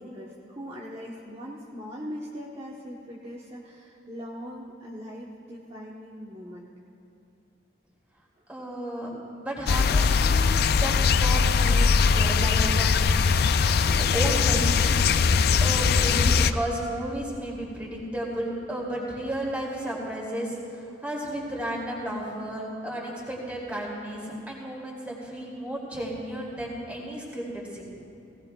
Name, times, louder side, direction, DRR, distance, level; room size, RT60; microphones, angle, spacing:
voice 1, 0.0-6.7, equal, 30° right, -5 dB, 1.0 m, -40 dB
voice 2, 8.5-9.1 9.3-13.1 13.4-15.0 15.6-27.8, right 1 dB, 10° right, -5 dB, 2.7 m, -33 dB
sound 1, 9.7-16.5, left 5 dB, 55° left, 0.4 m, -21 dB
18.5 x 17.5 x 2.3 m, 2.8 s
head